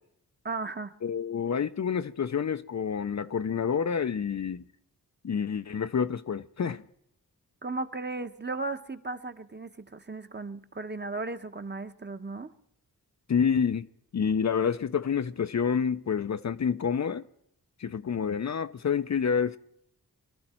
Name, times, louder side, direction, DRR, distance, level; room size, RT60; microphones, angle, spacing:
voice 1, 0.4-0.9 7.6-12.5, right 3 dB, 30° right, 1.2 m, -36 dB
voice 2, 1.0-4.6 5.2-6.8 13.3-13.9 14.1-17.2 17.8-19.6, left 7 dB, 45° left, 0.7 m, -28 dB
23.5 x 13.0 x 4.5 m
cardioid pair, 45°, 37 cm